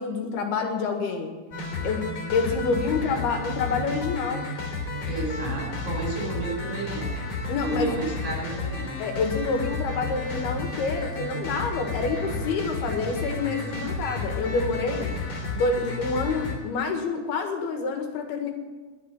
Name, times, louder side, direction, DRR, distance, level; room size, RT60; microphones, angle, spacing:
voice 1, 0.0-1.3 1.8-4.5 7.5-7.9 9.0-15.1 15.5-18.5, left 4 dB, 75° left, 4 dB, 3.6 m, -27 dB
sound 1, 1.5-16.6, left 3 dB, 35° left, 4.2 m, -32 dB
voice 2, 5.0-7.1 7.6-8.9, right 3 dB, 40° right, -1 dB, 6.1 m, -32 dB
21.5 x 7.3 x 7.5 m, 1.4 s
omnidirectional pair, 4.6 m